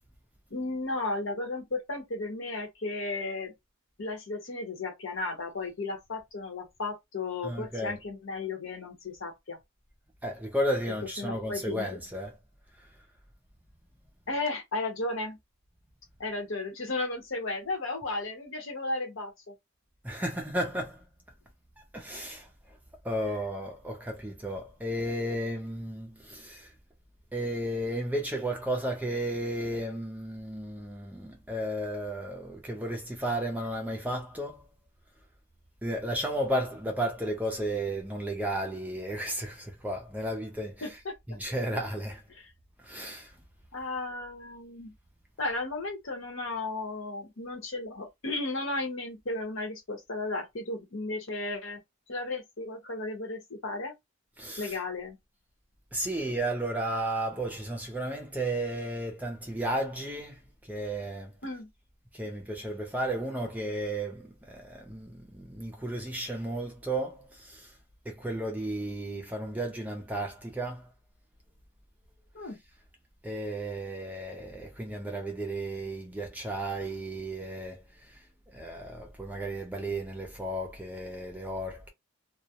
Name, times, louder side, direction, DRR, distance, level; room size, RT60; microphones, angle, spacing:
voice 1, 0.5-3.5 4.0-9.6 11.2-12.0 14.3-15.4 16.2-19.5 40.8-41.2 42.3-42.5 43.7-44.9 45.4-51.8 52.1-53.9 54.6-55.2 61.4-61.7 72.3-72.6, left 2 dB, 60° left, 0.9 m, -34 dB
voice 2, 7.4-8.0 10.2-12.4 20.0-21.0 21.9-22.5 23.0-26.7 27.3-34.6 35.8-40.8 41.4-42.2 42.8-43.3 54.4-54.7 55.9-60.4 60.7-61.3 62.1-67.7 68.1-70.9 73.2-77.8 78.5-81.9, right 1 dB, 5° right, 0.4 m, -33 dB
2.3 x 2.1 x 2.7 m
head